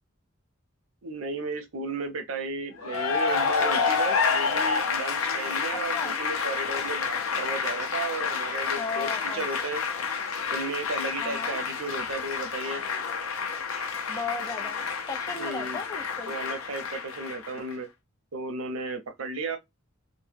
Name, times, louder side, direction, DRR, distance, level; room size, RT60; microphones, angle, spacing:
voice 1, 1.0-9.8 10.5-12.8 15.4-15.8 16.2-17.9 18.3-19.6, right 3 dB, 75° right, 0.6 m, -34 dB
Cheering / Applause, 2.8-17.7, left 5 dB, 85° left, 0.6 m, -29 dB
voice 2, 5.7-6.1 8.8-9.4 11.2-11.6 14.1-14.8 15.1-16.3, left 4 dB, 15° left, 0.5 m, -35 dB
2.2 x 2.1 x 3.2 m
head